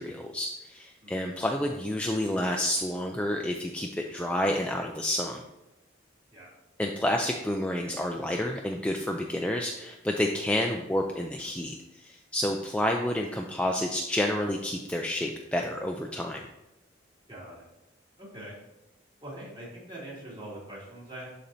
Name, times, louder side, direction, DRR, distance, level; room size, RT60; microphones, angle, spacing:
voice 1, 0.0-5.4 6.8-16.4, left 1 dB, 5° left, 2 dB, 0.3 m, -29 dB
voice 2, 1.0-1.4 6.3-6.5 17.3-17.6 18.2-18.5 19.2-21.3, right 1 dB, 25° right, -6 dB, 2.5 m, -43 dB
12.0 x 4.3 x 2.7 m, 0.95 s
head